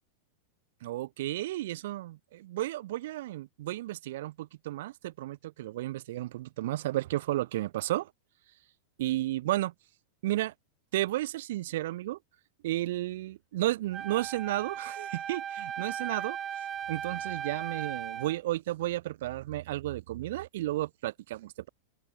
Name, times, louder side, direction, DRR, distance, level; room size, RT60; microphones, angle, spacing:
voice 1, 0.8-8.1 9.0-9.7 10.2-10.5 10.9-12.2 12.6-16.4 16.9-21.7, right 15 dB, 55° right, 2.9 m, -33 dB
Wind instrument woodwind instrument, 13.9-18.4, right 9 dB, 25° right, 2.1 m, -37 dB
open air
figure-of-eight pair, 90°, 0 cm